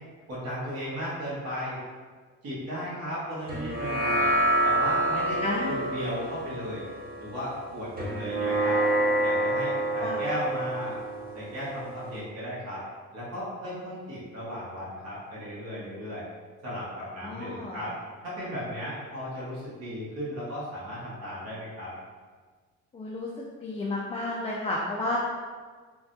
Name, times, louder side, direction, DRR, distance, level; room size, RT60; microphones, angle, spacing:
voice 1, 0.3-1.8 2.4-4.3 4.6-6.8 7.2-8.8 9.2-11.0 11.3-12.8 13.1-16.2 16.6-17.9 18.2-21.9, equal, 60° right, -9 dB, 1.3 m, -35 dB
sound 1, 3.5-12.2, right 1 dB, 30° right, 0.7 m, -28 dB
voice 2, 5.4-5.9 10.0-10.2 17.2-17.8 22.9-23.3 23.6-25.2, left 2 dB, 20° left, -4 dB, 0.3 m, -31 dB
3.4 x 2.3 x 2.6 m, 1.5 s
cardioid pair, 90°, 30 cm